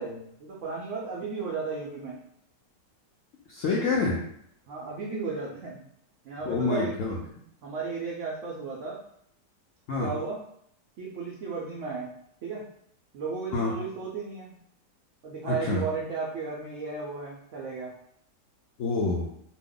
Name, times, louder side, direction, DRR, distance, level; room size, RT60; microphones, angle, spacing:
voice 1, 0.0-2.2 4.7-5.8 6.2-7.2 7.6-9.0 10.0-10.4 11.0-12.1 12.4-12.6 13.1-14.5 15.2-17.9, right 4 dB, 80° right, -3 dB, 0.6 m, -34 dB
voice 2, 3.5-4.2 6.5-7.2 9.9-10.1 13.5-13.7 15.4-15.8 18.8-19.3, left 3 dB, 75° left, -4 dB, 0.7 m, -27 dB
2.9 x 2.1 x 3.7 m, 0.70 s
omnidirectional pair, 1.9 m